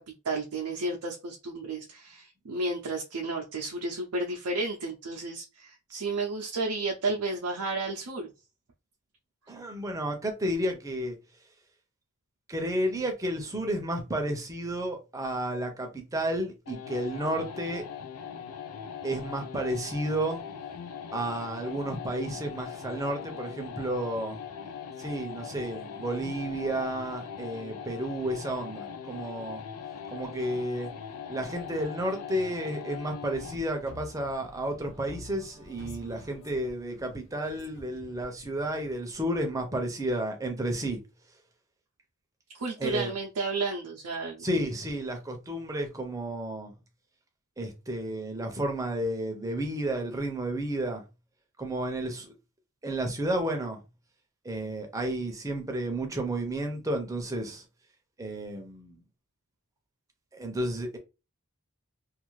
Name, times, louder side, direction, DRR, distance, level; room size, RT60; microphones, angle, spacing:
voice 1, 0.2-8.3 42.5-44.5, right 3 dB, 85° right, 0.5 m, -32 dB
voice 2, 9.5-11.2 12.5-17.8 19.0-20.4 21.1-24.4 25.0-29.6 30.1-30.9 31.3-41.0 42.8-43.1 44.4-46.7 47.6-51.0 51.6-52.3 52.8-53.8 54.4-57.6 58.2-59.0 60.3-61.0, right 1 dB, 15° right, 0.5 m, -32 dB
sound 1, 16.7-33.7, left 7 dB, 75° left, 0.4 m, -41 dB
sound 2, 33.3-39.1, left 1 dB, 55° left, 0.8 m, -48 dB
2.5 x 2.4 x 3.1 m
head